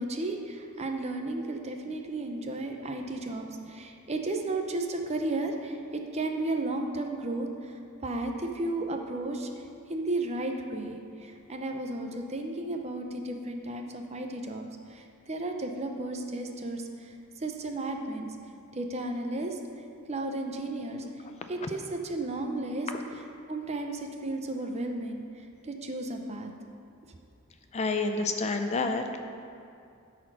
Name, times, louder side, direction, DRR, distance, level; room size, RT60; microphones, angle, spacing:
voice 1, 0.0-9.5 9.9-18.4 18.7-19.6 20.1-21.0 21.5-22.9 23.5-26.5, right 2 dB, 30° right, 4 dB, 0.7 m, -34 dB
voice 2, 27.7-29.2, left 3 dB, 30° left, 6 dB, 0.5 m, -29 dB
12.0 x 4.3 x 6.2 m, 2.5 s
head